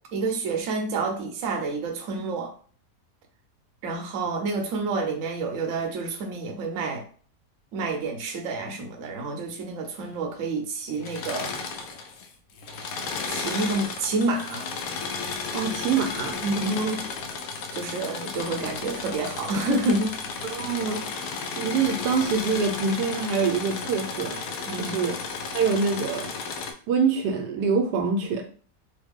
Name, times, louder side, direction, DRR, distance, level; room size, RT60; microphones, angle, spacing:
voice 1, 0.1-2.5 3.8-7.0 7.7-11.5 13.3-14.7 16.4-16.8 17.7-20.2 24.7-25.0, right 3 dB, 60° right, 0.9 m, -28 dB
Engine / Mechanisms, 10.9-12.3 12.6-26.7, left 4 dB, 70° left, 0.9 m, -33 dB
voice 2, 15.5-17.0 20.4-21.0 21.6-24.4 24.8-25.2 25.5-26.3 26.9-28.4, right 5 dB, 75° right, 1.1 m, -25 dB
3.2 x 2.2 x 3.5 m
omnidirectional pair, 1.8 m